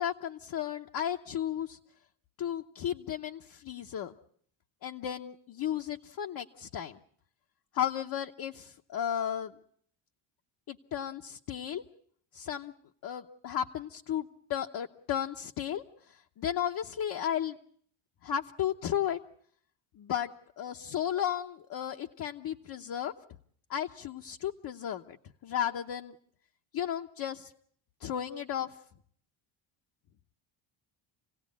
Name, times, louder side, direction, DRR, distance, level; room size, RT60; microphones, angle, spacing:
voice 1, 0.0-1.8 2.4-4.1 4.8-7.0 7.7-9.5 10.7-11.8 12.3-12.7 13.0-17.6 18.2-19.2 20.0-20.3 20.6-23.1 23.7-25.2 25.4-26.2 26.7-27.5 28.0-28.8, left 10 dB, 45° left, 3 dB, 0.9 m, -34 dB
28.0 x 17.5 x 8.5 m, 0.64 s
cardioid pair, 155°, 50 cm